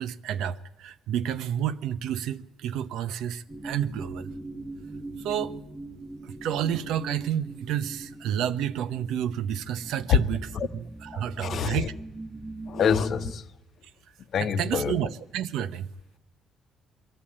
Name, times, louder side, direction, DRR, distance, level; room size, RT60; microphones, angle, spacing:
voice 1, 0.0-4.3 5.2-5.6 6.2-11.9 14.4-15.9, right 10 dB, 85° right, 0.8 m, -30 dB
sound 1, 3.5-13.3, right 2 dB, 15° right, 1.0 m, -41 dB
voice 2, 11.1-11.9 12.7-13.4 14.3-15.0, left 7 dB, 45° left, 0.9 m, -25 dB
22.0 x 14.5 x 8.7 m
cardioid pair, 160°, 0 cm